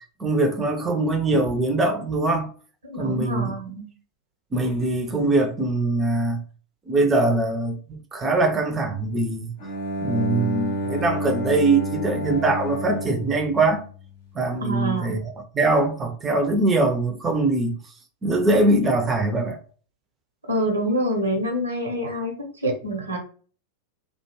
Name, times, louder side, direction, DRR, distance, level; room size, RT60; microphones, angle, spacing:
voice 1, 0.2-2.5 3.0-3.5 4.5-6.4 6.9-7.8 8.1-9.5 10.0-13.8 14.3-17.8 18.2-19.6, right 2 dB, 20° right, 0.5 m, -22 dB
voice 2, 2.9-3.9 14.6-15.2 20.5-22.3 22.6-23.2, right 1 dB, 75° right, 0.9 m, -26 dB
Bowed string instrument, 9.6-14.4, right 1 dB, 55° left, 0.7 m, -30 dB
2.5 x 2.2 x 3.0 m
figure-of-eight pair, 90°, 0 cm